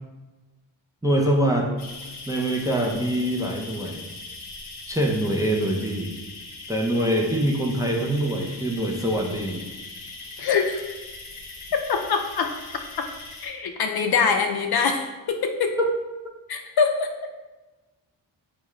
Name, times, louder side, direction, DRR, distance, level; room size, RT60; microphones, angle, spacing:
voice 1, 1.0-1.7 2.3-4.1 4.9-6.1 6.7-9.6 15.8-15.9, right 1 dB, 10° right, 0 dB, 0.4 m, -24 dB
sound 1, 1.8-13.5, left 3 dB, 90° left, 0.7 m, -40 dB
voice 2, 10.4-11.0 11.7-12.5 13.4-15.8 16.5-17.1, left 5 dB, 50° left, 5 dB, 0.5 m, -24 dB
3.5 x 2.3 x 3.1 m, 1.1 s
supercardioid pair, 40°, 49 cm